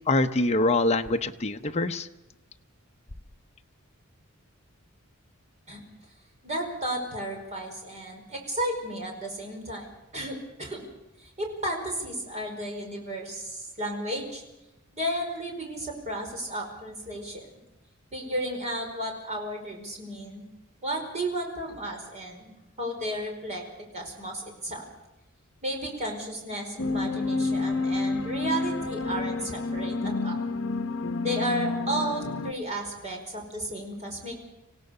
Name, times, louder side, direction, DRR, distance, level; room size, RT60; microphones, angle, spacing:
voice 1, 0.1-2.1, left 2 dB, 30° left, 5 dB, 0.8 m, -24 dB
voice 2, 6.4-10.8 11.2-14.4 14.9-17.5 18.1-20.4 20.8-23.6 23.9-24.8 25.6-30.4 31.2-34.5, right 1 dB, 35° right, 1 dB, 5.0 m, -33 dB
sound 1, 26.8-32.5, left 3 dB, 60° left, 1.0 m, -29 dB
26.0 x 17.0 x 6.7 m, 0.96 s
head